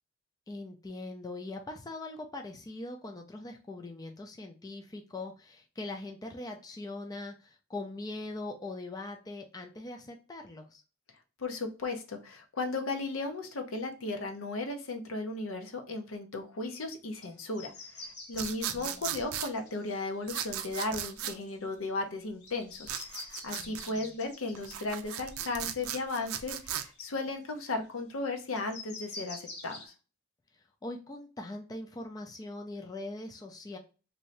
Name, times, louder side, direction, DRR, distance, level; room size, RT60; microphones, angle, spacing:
voice 1, 0.5-10.8 18.4-19.2 23.6-24.2 30.5-33.8, left 2 dB, 20° left, 3 dB, 0.4 m, -42 dB
voice 2, 11.4-29.9, left 2 dB, 70° left, 4 dB, 0.7 m, -36 dB
sound 1, 17.2-17.3 17.5-21.8 22.4-27.0 27.5-27.6 28.6-29.9, left 3 dB, 55° left, 1.4 m, -48 dB
sound 2, 18.3-19.5 20.3-21.4 22.8-23.9 24.6-26.9, right 10 dB, 90° right, 0.4 m, -37 dB
2.7 x 2.6 x 3.1 m, 0.34 s
head